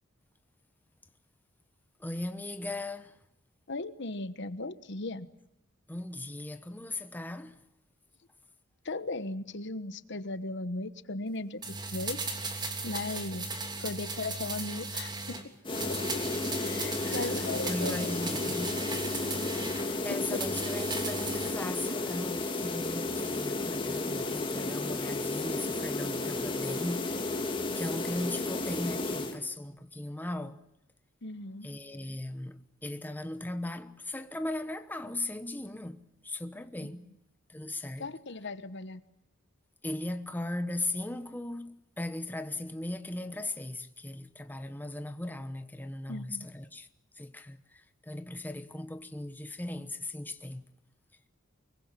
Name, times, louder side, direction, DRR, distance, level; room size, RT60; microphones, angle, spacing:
voice 1, 2.0-3.2 5.9-7.6 17.0-18.9 20.0-27.3 27.7-30.6 31.6-37.1 37.5-38.1 39.8-46.9 47.2-50.7, left 1 dB, 10° left, 1.0 m, -38 dB
voice 2, 3.7-5.3 8.8-11.6 11.9-12.2 12.8-13.5 13.8-15.4 15.9-16.0 16.6-18.2 20.1-20.4 31.2-31.7 36.8-36.9 38.0-39.0 46.1-46.5, left 2 dB, 60° left, 1.2 m, -37 dB
sound 1, 11.6-15.4 15.7-19.9 20.3-21.5 21.8-21.9, right 3 dB, 20° right, 3.0 m, -37 dB
sound 2, 15.6-29.4, left 2 dB, 25° left, 2.4 m, -33 dB
24.5 x 22.5 x 7.5 m
head